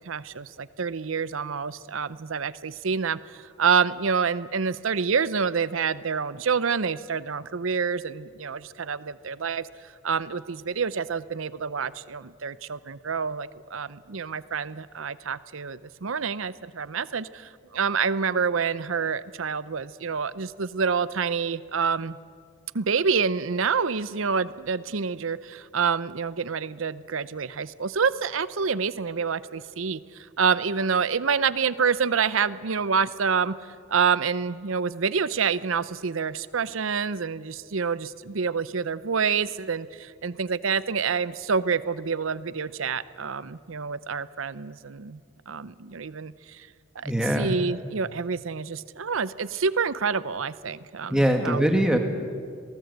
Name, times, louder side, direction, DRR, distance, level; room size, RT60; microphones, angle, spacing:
voice 1, 0.0-9.7 10.0-22.2 22.7-30.0 30.4-33.6 33.9-45.2 45.5-46.7 47.0-47.1 47.4-51.7, right 6 dB, 80° right, 17 dB, 0.7 m, -27 dB
voice 2, 47.0-47.5 51.1-52.0, equal, 5° right, 4 dB, 2.0 m, -22 dB
26.5 x 19.0 x 8.1 m, 2.1 s
head